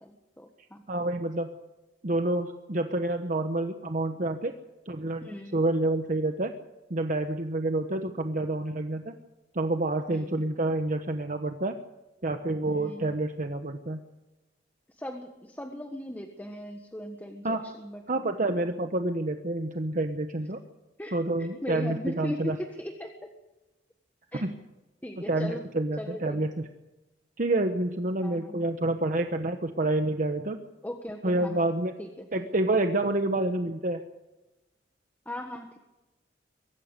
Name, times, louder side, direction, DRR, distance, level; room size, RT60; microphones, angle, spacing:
voice 1, 0.0-0.8 5.2-5.6 10.1-10.4 12.7-13.1 14.9-18.3 21.0-23.3 24.3-24.4 25.0-25.6 26.0-26.5 28.2-28.7 30.8-31.7 32.0-32.5 35.2-35.8, left 1 dB, 10° left, 4 dB, 1.4 m, -39 dB
voice 2, 0.9-1.5 2.0-4.5 4.9-6.5 6.9-9.1 9.5-11.7 12.2-14.0 17.4-17.6 18.1-20.6 21.1-22.6 24.3-24.5 25.3-26.7 27.4-30.6 31.2-31.9 32.3-34.0, right 2 dB, 50° right, 6 dB, 1.1 m, -28 dB
23.0 x 14.5 x 8.2 m, 1.0 s
head